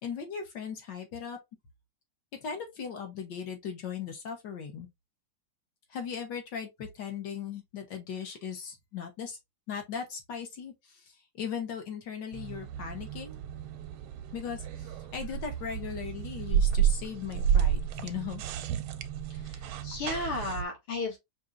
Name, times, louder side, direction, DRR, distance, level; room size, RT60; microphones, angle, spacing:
voice 1, 0.0-1.4 2.4-4.9 5.9-9.4 9.7-13.4 14.3-18.4, left 7 dB, 65° left, 1.6 m, -38 dB
sound 1, 12.3-20.6, right 8 dB, 85° right, 1.5 m, -31 dB
voice 2, 19.3-21.2, left 3 dB, 85° left, 3.0 m, -34 dB
5.3 x 2.9 x 2.4 m
omnidirectional pair, 2.3 m